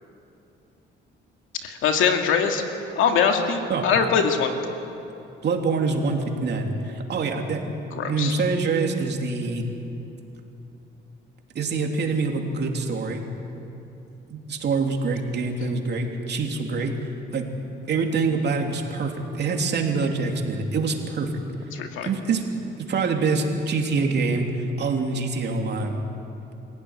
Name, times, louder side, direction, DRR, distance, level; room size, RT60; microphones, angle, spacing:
voice 1, 1.6-2.6 3.0-4.5 7.9-8.4 21.7-22.1, left 6 dB, 85° left, 4 dB, 2.3 m, -22 dB
voice 2, 5.4-9.6 11.5-13.2 14.3-17.0 17.3-17.5 17.9-21.3 22.0-22.4 22.8-24.5 24.8-26.0, right 4 dB, 60° right, 2 dB, 3.1 m, -25 dB
25.5 x 16.5 x 9.9 m, 2.9 s
cardioid pair, 90°, 20 cm